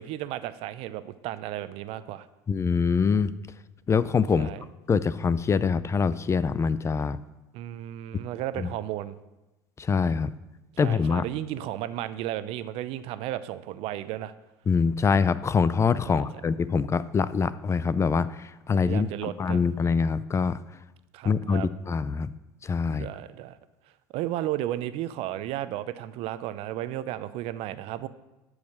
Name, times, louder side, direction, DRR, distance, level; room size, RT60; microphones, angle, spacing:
voice 1, 0.0-2.3 4.3-4.6 7.5-9.2 10.7-14.3 16.1-16.3 18.8-19.6 21.1-21.7 22.8-23.6 24.1-28.1, right 13 dB, 65° right, 14 dB, 0.6 m, -34 dB
voice 2, 2.5-3.3 3.9-4.5 4.9-7.2 8.6-8.7 9.8-10.3 10.8-11.2 14.7-18.3 18.7-19.1 19.4-20.6 21.3-22.3 22.6-23.1, left 5 dB, 25° left, 16 dB, 0.4 m, -24 dB
12.0 x 4.9 x 6.3 m, 1.0 s
supercardioid pair, 85°, 11 cm